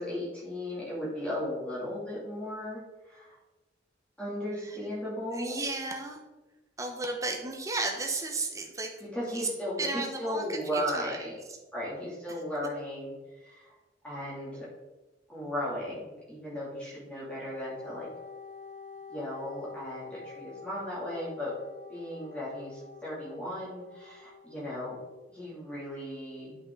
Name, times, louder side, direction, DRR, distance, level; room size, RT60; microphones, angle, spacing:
voice 1, 0.0-3.4 4.2-5.6 9.0-11.3 11.7-13.1 13.4-13.7 14.0-14.7 15.3-18.1 19.1-21.5 21.9-25.0 25.3-26.6, left 1 dB, 5° left, -8 dB, 2.9 m, -36 dB
voice 2, 5.3-6.2 6.8-9.0 9.3-9.5 9.8-11.4, right 3 dB, 15° right, 2 dB, 0.9 m, -34 dB
Wind instrument woodwind instrument, 17.5-25.2, left 5 dB, 40° left, 0.7 m, -48 dB
8.4 x 5.8 x 3.9 m, 1.2 s
head